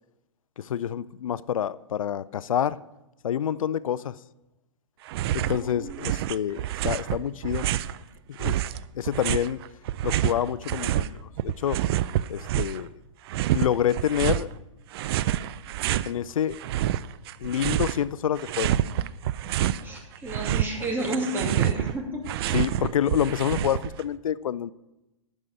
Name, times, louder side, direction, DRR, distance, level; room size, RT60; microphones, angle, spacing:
voice 1, 0.6-2.8 3.2-4.2 5.3-7.7 8.3-8.6 8.9-9.6 10.0-11.2 11.4-11.8 12.3-12.9 13.5-14.5 16.1-16.6 17.4-18.8 22.5-24.7, left 9 dB, 90° left, 17 dB, 0.4 m, -27 dB
sound 1, 5.1-5.6 5.9-8.0 8.4-11.1 11.4-12.9 13.3-14.5 14.9-16.1 16.5-18.1 18.3-19.8 20.2-24.0, right 12 dB, 50° right, 0.4 m, -27 dB
voice 2, 5.6-6.0 19.6-22.6, right 1 dB, 10° right, 0 dB, 2.5 m, -32 dB
11.0 x 5.5 x 8.7 m, 0.98 s
hypercardioid pair, 130°, 17 cm